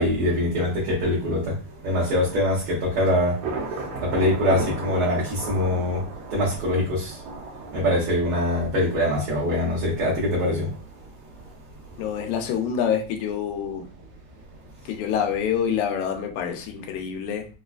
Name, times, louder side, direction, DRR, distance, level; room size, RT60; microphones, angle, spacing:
voice 1, 0.0-3.4 4.0-6.0 6.3-7.2 7.7-10.7, left 1 dB, 60° right, -5 dB, 1.6 m, -23 dB
Thunder / Rain, 2.2-15.8, right 3 dB, 80° right, 1.4 m, -38 dB
voice 2, 12.0-13.9 14.9-17.5, left 8 dB, 85° left, 4 dB, 2.1 m, -26 dB
4.7 x 2.3 x 2.3 m, 0.36 s
omnidirectional pair, 3.4 m